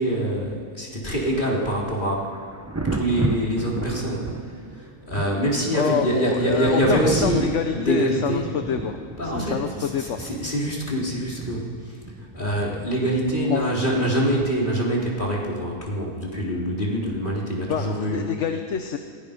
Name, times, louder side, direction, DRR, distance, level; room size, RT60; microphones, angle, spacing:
voice 1, 0.0-2.3 2.9-7.5 7.8-8.4 9.2-18.2, right 1 dB, 30° left, -3 dB, 4.0 m, -25 dB
Thunder, 1.3-14.9 16.6-16.8, right 2 dB, 15° right, 0.7 m, -34 dB
voice 2, 5.7-9.0 9.2-10.2 13.5-13.7 17.6-19.0, left 7 dB, 55° left, 6 dB, 1.1 m, -27 dB
26.5 x 18.5 x 5.3 m, 2.3 s
omnidirectional pair, 1.7 m